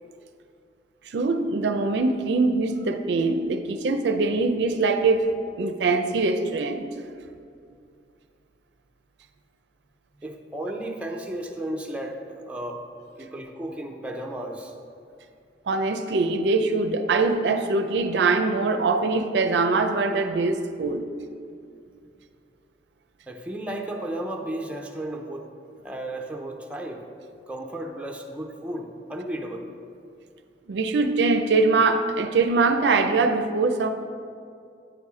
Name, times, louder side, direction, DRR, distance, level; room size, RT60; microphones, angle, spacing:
voice 1, 1.1-5.3 5.6-6.9 15.7-21.1 30.7-33.9, right 3 dB, 75° right, 8 dB, 0.4 m, -23 dB
voice 2, 10.2-12.9 13.2-14.7 23.3-25.5 25.8-27.0 27.5-29.7, right 1 dB, 5° right, 1 dB, 0.5 m, -34 dB
9.1 x 4.1 x 4.8 m, 2.4 s
head